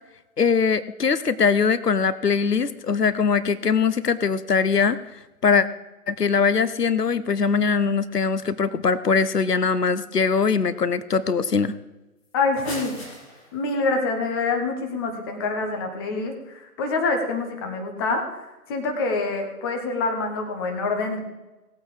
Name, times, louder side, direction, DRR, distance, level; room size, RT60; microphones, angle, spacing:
voice 1, 0.4-5.0 5.4-5.7 6.1-11.7, left 5 dB, 90° left, 15 dB, 0.9 m, -21 dB
sound 1, 12.2-13.8, left 1 dB, 40° left, 4.3 m, -37 dB
voice 2, 12.3-12.9 13.5-18.2 18.7-21.2, left 3 dB, 15° left, 4 dB, 1.2 m, -26 dB
17.5 x 8.4 x 4.9 m, 1.1 s
figure-of-eight pair, 145°, 46 cm